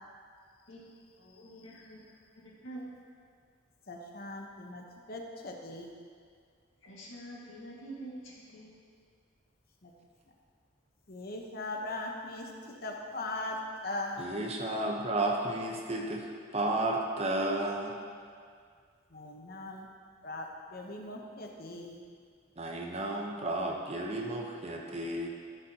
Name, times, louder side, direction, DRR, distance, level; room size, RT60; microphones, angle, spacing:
voice 1, 1.2-3.0 6.8-8.8, right 1 dB, 85° left, -4 dB, 1.9 m, -47 dB
voice 2, 3.9-5.9 9.8-9.9 11.1-12.5 12.8-14.2 19.1-19.9 20.2-22.0, left 2 dB, 50° left, 1 dB, 1.0 m, -39 dB
voice 3, 14.2-16.3 16.5-17.9 22.6-25.3, right 2 dB, 30° right, 0 dB, 0.9 m, -32 dB
14.5 x 7.0 x 2.9 m, 2.1 s
head